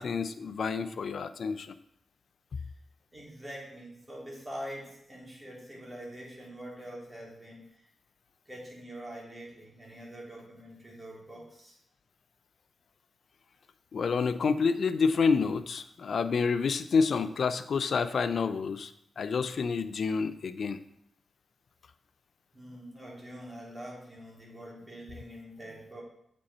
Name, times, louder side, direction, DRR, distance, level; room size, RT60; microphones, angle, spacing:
voice 1, 0.0-1.7 2.5-2.6 13.9-18.9 19.2-20.8, left 5 dB, 65° left, 12 dB, 0.5 m, -28 dB
voice 2, 3.1-7.7 8.4-11.8 22.5-26.0, equal, 20° right, -4 dB, 3.4 m, -44 dB
8.4 x 5.3 x 4.2 m, 0.73 s
cardioid pair, 65°, 0 cm